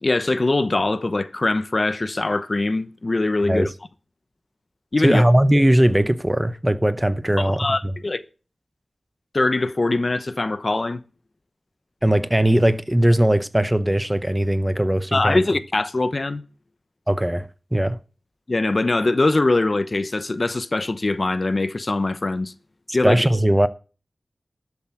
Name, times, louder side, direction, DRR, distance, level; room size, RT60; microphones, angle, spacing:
voice 1, 0.0-3.7 4.9-5.2 7.4-8.2 9.3-11.0 15.1-16.4 18.5-22.5 22.9-23.2, left 2 dB, 45° left, 0.9 m, -22 dB
voice 2, 5.0-7.7 12.0-15.4 17.1-18.0 22.9-23.7, right 1 dB, 10° right, 0.7 m, -19 dB
12.0 x 7.3 x 6.0 m
wide cardioid pair, 75°, 0 cm